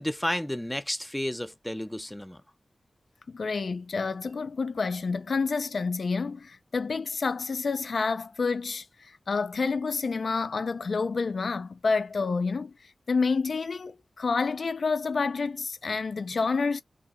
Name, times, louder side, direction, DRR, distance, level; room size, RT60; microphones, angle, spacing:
voice 1, 0.0-2.4, left 1 dB, 5° left, 0.5 m, -31 dB
voice 2, 3.3-12.7 13.1-16.8, left 4 dB, 65° left, 0.5 m, -29 dB
4.7 x 2.8 x 2.6 m
wide cardioid pair, 110°, 0 cm